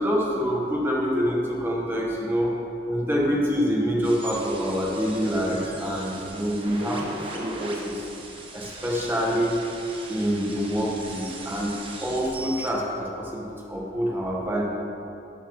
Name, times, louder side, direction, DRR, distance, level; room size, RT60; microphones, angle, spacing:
voice 1, 0.0-2.5 2.9-8.1 8.5-9.6 10.1-14.6, equal, 10° right, -3 dB, 1.5 m, -26 dB
sound 1, 4.0-12.7, right 2 dB, 30° right, 1.0 m, -39 dB
12.5 x 7.8 x 3.2 m, 2.8 s
head